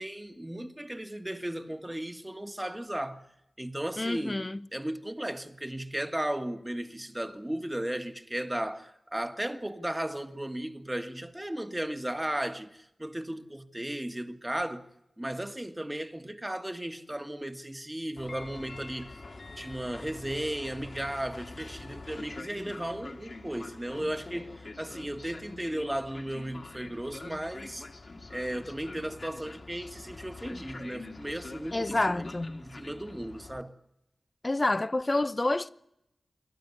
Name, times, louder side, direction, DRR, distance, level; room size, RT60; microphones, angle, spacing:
voice 1, 0.0-3.2 3.6-4.5 4.7-14.8 15.2-19.2 19.6-27.9 28.3-32.2 32.6-33.7, right 1 dB, 15° right, 1.6 m, -35 dB
voice 2, 4.0-4.7 31.7-32.7 34.4-35.7, left 2 dB, 30° left, 0.8 m, -28 dB
Train, 18.2-33.6, left 3 dB, 55° left, 2.2 m, -45 dB
28.0 x 12.0 x 9.7 m
wide cardioid pair, 65°, 0 cm